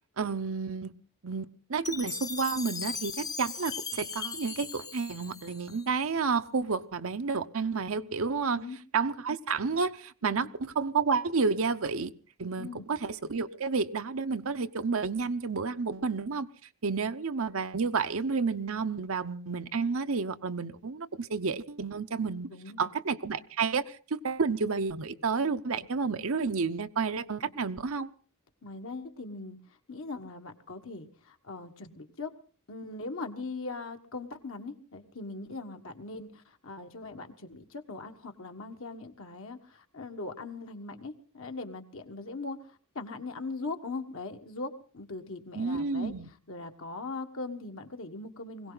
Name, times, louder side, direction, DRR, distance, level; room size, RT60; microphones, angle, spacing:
voice 1, 0.2-0.9 1.2-8.6 8.9-12.1 12.4-16.5 16.8-22.5 22.8-28.1 45.5-46.3, right 4 dB, 65° right, 0.8 m, -30 dB
Chime, 1.8-6.1, left 5 dB, 20° left, 0.7 m, -38 dB
voice 2, 22.5-22.9 27.4-27.5 28.6-29.6 29.9-32.3 32.7-46.1 46.5-48.7, left 3 dB, 65° left, 1.6 m, -40 dB
21.0 x 17.0 x 4.0 m
head